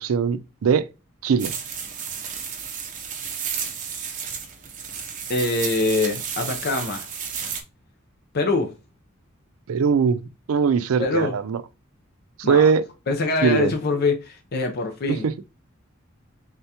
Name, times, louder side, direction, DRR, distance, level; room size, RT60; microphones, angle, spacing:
voice 1, 0.0-0.9 1.2-1.5 9.7-10.2 10.5-11.6 12.5-12.9 13.4-13.7 15.1-15.3, right 6 dB, 90° right, 0.4 m, -20 dB
sound 1, 1.4-7.6, right 7 dB, 40° right, 0.7 m, -32 dB
voice 2, 5.3-7.1 8.3-8.7 11.0-11.3 12.4-12.6 13.1-15.3, left 3 dB, 50° left, 0.6 m, -24 dB
3.6 x 3.4 x 2.8 m
head